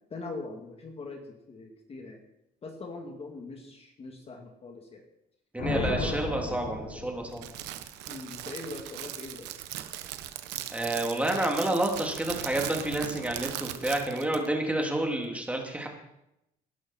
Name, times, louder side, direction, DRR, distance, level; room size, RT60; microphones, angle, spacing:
voice 1, 0.1-2.2 2.6-5.0 5.6-6.2 8.1-9.5, left 3 dB, 35° left, 3 dB, 2.2 m, -41 dB
voice 2, 5.5-7.5 10.7-15.9, right 1 dB, 10° right, 1 dB, 3.0 m, -29 dB
Thunder, 5.6-7.8, left 3 dB, 80° left, 5.6 m, -34 dB
Crackle, 7.3-14.5, right 13 dB, 90° right, 1.1 m, -39 dB
18.0 x 11.5 x 4.4 m, 0.85 s
cardioid pair, 110°, 17 cm